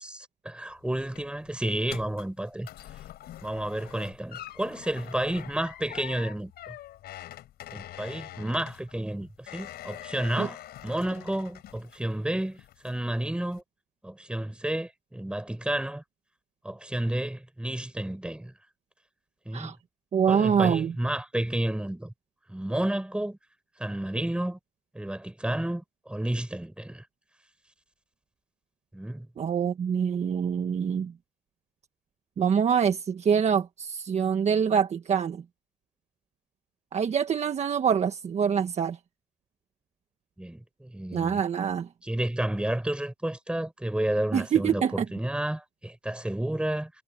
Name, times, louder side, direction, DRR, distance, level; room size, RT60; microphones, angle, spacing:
voice 1, 0.0-2.7 3.4-6.8 7.7-10.6 10.8-13.6 14.0-16.0 16.6-18.5 19.4-19.8 20.3-22.1 22.5-23.4 23.8-24.6 24.9-27.0 28.9-29.3 40.4-41.4 42.0-46.9, right 1 dB, 5° right, 6.1 m, -31 dB
sound 1, 0.7-12.3 12.6-13.1 13.5-13.6, left 13 dB, 70° left, 5.0 m, -45 dB
voice 2, 20.1-20.9 29.4-31.1 32.4-35.4 36.9-39.0 41.1-41.9 44.3-45.0, right 7 dB, 40° right, 1.5 m, -25 dB
cardioid pair, 110°, 17 cm